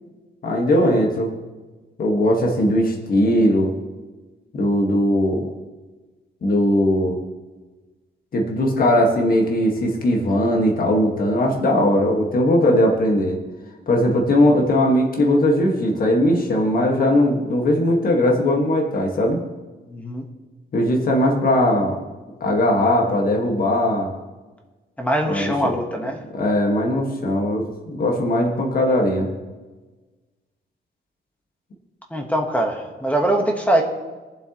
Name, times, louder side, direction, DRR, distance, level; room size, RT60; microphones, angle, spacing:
voice 1, 0.4-1.3 2.0-3.7 4.5-5.4 6.4-7.2 8.3-13.4 13.9-19.4 20.7-22.0 22.4-24.1 25.3-25.5 26.3-29.3, left 1 dB, 50° left, 0 dB, 1.7 m, -19 dB
voice 2, 19.9-20.2 25.0-26.2 32.1-33.8, right 1 dB, 5° left, 2 dB, 1.3 m, -22 dB
22.0 x 7.8 x 3.0 m, 1.3 s
wide cardioid pair, 170°, 19 cm